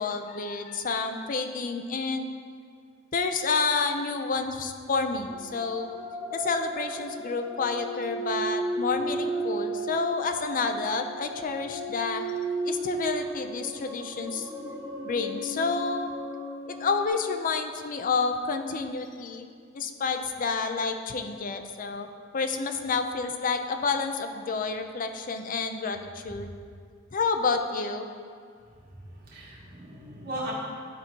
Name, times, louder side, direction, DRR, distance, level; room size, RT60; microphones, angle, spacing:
voice 1, 0.0-2.3 3.1-5.9 6.3-12.2 12.6-14.5 15.0-16.1 16.7-19.5 19.7-22.1 22.3-26.5 27.1-28.1, left 4 dB, 45° left, 7 dB, 0.5 m, -29 dB
sound 1, 5.2-17.1, right 2 dB, 15° right, 0.8 m, -34 dB
voice 2, 29.1-30.5, right 1 dB, 50° right, -7 dB, 2.1 m, -38 dB
11.0 x 4.2 x 4.5 m, 2.1 s
head